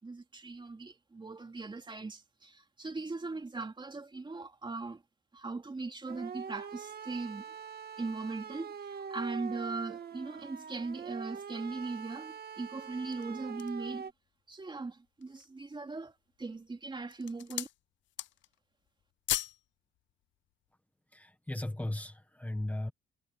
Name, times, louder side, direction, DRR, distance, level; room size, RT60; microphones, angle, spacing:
voice 1, 0.0-5.0 5.3-7.5 8.0-14.1 14.5-17.7, right 3 dB, 25° right, 2.8 m, -39 dB
sound 1, 6.1-14.1, right 7 dB, 50° right, 1.9 m, -43 dB
sound 2, 12.9-13.9 14.5-14.6 15.1-15.6 16.3-16.7 17.0-17.8 18.1-18.6 18.9-19.6 19.9-20.1, left 14 dB, 70° left, 0.5 m, -37 dB
voice 2, 21.1-22.9, left 1 dB, 5° left, 1.6 m, -36 dB
cardioid pair, 90°, 20 cm